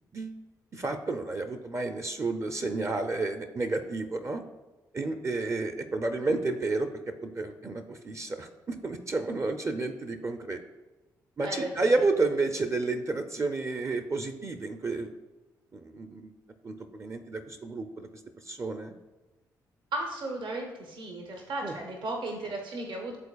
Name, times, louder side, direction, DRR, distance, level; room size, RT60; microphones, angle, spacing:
voice 1, 0.7-4.4 4.9-10.6 11.4-15.1 15.7-16.3 16.6-18.1 18.5-18.9 21.6-21.8, right 3 dB, 30° right, 7 dB, 0.6 m, -31 dB
voice 2, 11.4-12.1 19.9-23.2, right 2 dB, 60° right, 1 dB, 1.2 m, -35 dB
10.5 x 3.9 x 2.4 m, 1.1 s
hypercardioid pair, 40°, 9 cm